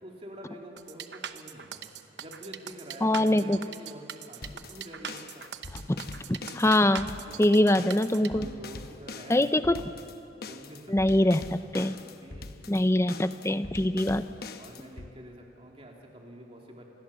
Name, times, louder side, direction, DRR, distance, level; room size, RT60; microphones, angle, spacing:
voice 1, 0.0-1.9 2.2-5.4 7.1-7.8 8.3-9.3 9.6-10.0 10.5-11.6 12.2-13.1 13.5-13.7 14.6-16.8, right 1 dB, 30° right, 0 dB, 3.2 m, -47 dB
sound 1, 0.8-8.3, right 8 dB, 65° right, 1.0 m, -41 dB
voice 2, 3.0-3.6 5.9-6.0 6.3-7.1 7.4-8.5 9.3-9.8 10.9-11.9 12.7-14.3, left 1 dB, 15° left, 12 dB, 0.6 m, -23 dB
sound 2, 4.4-15.1, left 3 dB, 55° left, 1.0 m, -43 dB
27.0 x 21.0 x 7.3 m, 2.8 s
head